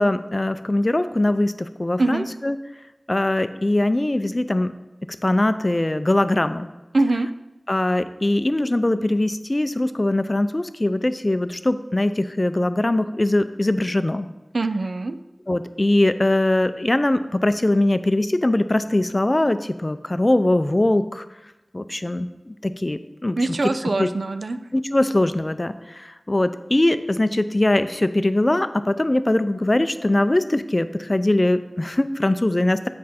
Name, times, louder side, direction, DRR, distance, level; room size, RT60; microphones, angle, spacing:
voice 1, 0.0-2.6 3.1-4.7 5.0-6.7 7.7-14.3 15.5-21.3 21.7-23.4 24.0-24.1 24.7-32.9, left 1 dB, 40° left, 11 dB, 0.4 m, -21 dB
voice 2, 6.9-7.3 14.5-15.2 23.4-24.6, right 2 dB, 90° right, 9 dB, 0.3 m, -23 dB
7.4 x 5.2 x 4.3 m, 1.0 s
wide cardioid pair, 40°, 0 cm